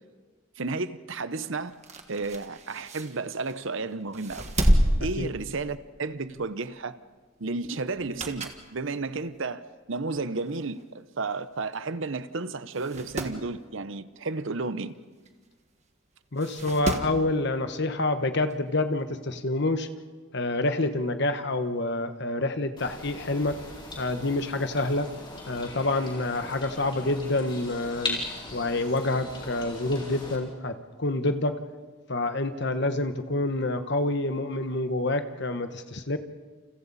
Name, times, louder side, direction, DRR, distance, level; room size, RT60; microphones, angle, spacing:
voice 1, 0.6-1.7 2.1-4.5 5.0-7.0 7.4-9.6 9.9-14.9, right 3 dB, 60° right, 0.8 m, -32 dB
sound 1, 1.7-3.7 4.1-6.0 6.4-6.6 7.9-8.7 9.2-9.3 10.2-10.3 10.5-10.6 10.8-10.9 11.7-11.9 12.2-12.3 12.7-13.4 15.3-15.4 16.4-17.2 18.5-18.6, right 1 dB, 30° right, 1.7 m, -29 dB
voice 2, 16.3-19.9 20.3-23.6 24.0-25.1 25.5-28.2 28.5-31.6 32.1-36.2, left 2 dB, 55° left, 1.2 m, -27 dB
sound 2, 22.8-30.4, left 2 dB, 20° left, 4.5 m, -39 dB
29.5 x 29.5 x 4.2 m
head